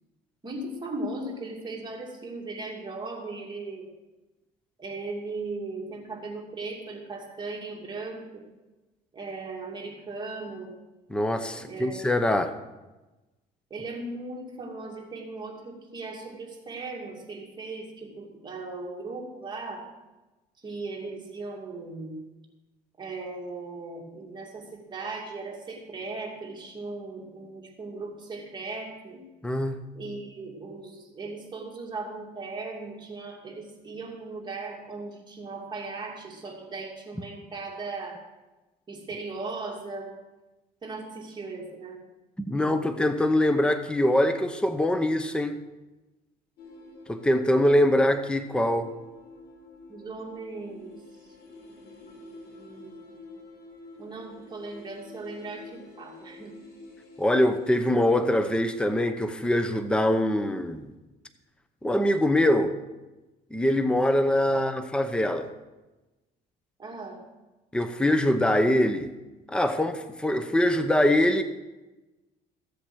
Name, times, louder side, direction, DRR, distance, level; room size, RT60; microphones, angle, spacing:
voice 1, 0.4-3.9 4.8-8.5 9.1-10.7 11.5-12.0 13.7-19.9 20.6-22.2 23.0-29.3 29.9-38.2 38.9-40.1 40.8-42.0 49.9-51.0 52.5-53.1 54.0-56.6 64.5-64.7 66.8-67.2, right 3 dB, 25° right, -1 dB, 2.6 m, -38 dB
voice 2, 11.1-12.5 29.4-29.8 42.5-45.6 47.1-48.9 57.2-60.9 61.8-62.7 63.5-65.5 67.7-69.1 69.5-71.4, left 1 dB, 5° left, 9 dB, 0.8 m, -23 dB
sound 1, 46.6-58.3, left 2 dB, 85° left, 3.9 m, -48 dB
15.0 x 7.7 x 6.2 m, 1.1 s
cardioid pair, 110°, 17 cm